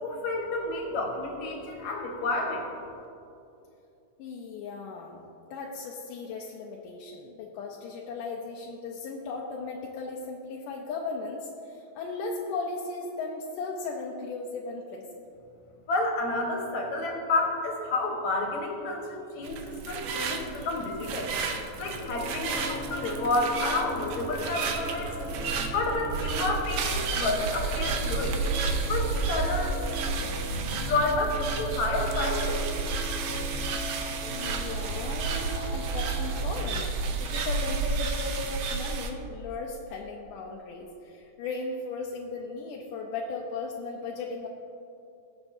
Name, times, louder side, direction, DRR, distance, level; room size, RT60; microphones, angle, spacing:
voice 1, 0.0-3.0 15.9-21.3 21.8-25.5 25.7-28.3 28.9-29.8 30.9-32.6, left 2 dB, 65° left, 0 dB, 2.5 m, -30 dB
voice 2, 4.2-15.0 34.3-44.5, left 3 dB, 80° left, -1 dB, 2.2 m, -37 dB
sound 1, 19.4-39.1, right 4 dB, 80° right, 1.4 m, -31 dB
sound 2, 22.0-36.5, equal, 20° right, 1.9 m, -39 dB
20.0 x 7.0 x 2.7 m, 2.8 s
omnidirectional pair, 3.8 m